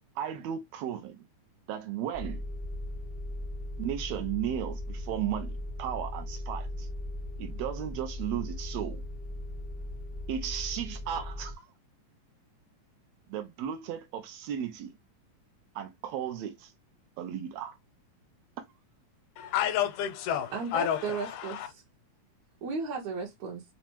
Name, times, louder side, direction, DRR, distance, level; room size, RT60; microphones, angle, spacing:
voice 1, 0.2-1.2 1.7-2.4 3.8-5.5 5.8-6.9 7.4-9.0 10.3-11.6 13.3-14.9 15.7-16.7 17.2-17.8, right 10 dB, 85° right, 1.5 m, -35 dB
sound 1, 2.1-11.5, left 1 dB, 45° right, 0.6 m, -38 dB
voice 2, 19.4-21.7, left 10 dB, 85° left, 2.1 m, -30 dB
voice 3, 20.5-21.8 22.6-23.6, right 4 dB, 70° right, 2.2 m, -35 dB
5.7 x 2.1 x 2.9 m
omnidirectional pair, 3.6 m